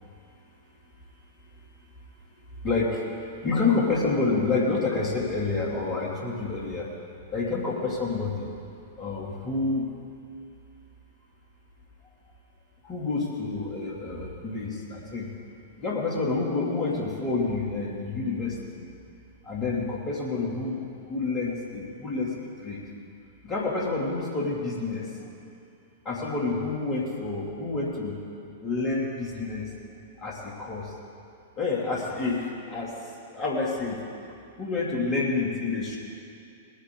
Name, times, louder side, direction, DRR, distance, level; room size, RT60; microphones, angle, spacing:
voice 1, 2.6-3.1 3.4-6.9 7.3-8.5 9.0-9.9 12.8-15.3 15.8-18.9 19.4-22.8 23.4-25.1 26.0-28.2 28.6-29.7 30.2-30.9 31.6-33.0 33.3-34.0 34.6-36.0, left 3 dB, 25° left, -3 dB, 3.0 m, -28 dB
19.5 x 9.9 x 4.0 m, 2.6 s
figure-of-eight pair, 100°, 0 cm